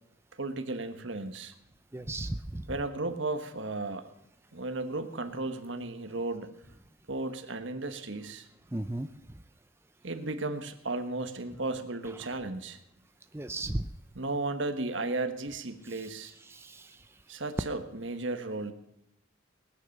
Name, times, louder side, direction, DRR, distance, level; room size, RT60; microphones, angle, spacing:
voice 1, 0.3-1.5 2.7-4.1 4.5-6.5 7.1-8.5 10.0-12.8 14.1-16.3 17.3-18.7, right 2 dB, 65° right, 8 dB, 1.4 m, -34 dB
voice 2, 1.9-2.7 8.7-9.4 13.3-13.9 15.9-16.1 16.4-17.1, right 1 dB, 10° right, 8 dB, 0.5 m, -36 dB
19.5 x 9.8 x 6.7 m, 0.80 s
head